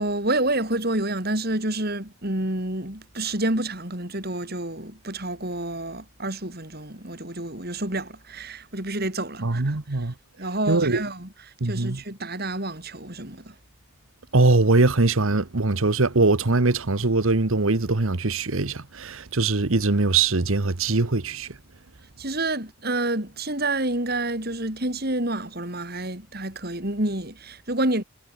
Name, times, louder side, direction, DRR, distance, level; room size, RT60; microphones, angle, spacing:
voice 1, 0.0-9.7 10.4-11.3 11.6-13.5 22.2-28.0, right 2 dB, 45° right, 4.6 m, -28 dB
voice 2, 9.4-10.1 10.7-11.0 11.6-12.0 14.3-21.6, right 3 dB, 65° right, 1.2 m, -22 dB
head